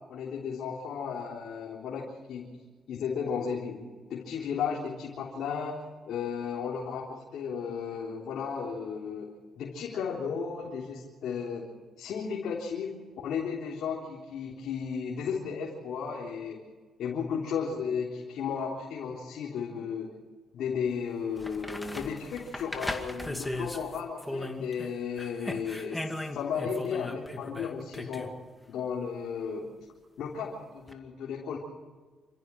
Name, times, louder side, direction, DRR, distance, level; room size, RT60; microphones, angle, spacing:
voice 1, 0.1-2.6 2.9-11.7 12.0-16.6 17.0-20.1 20.5-28.3 28.7-29.7 30.2-31.6, left 6 dB, 75° left, -3 dB, 3.8 m, -34 dB
sound 1, 20.9-21.0 21.4-24.9 25.2-28.3 30.9-31.0, left 1 dB, 10° left, 2.3 m, -38 dB
28.0 x 15.0 x 6.2 m, 1.4 s
cardioid pair, 90°, 0 cm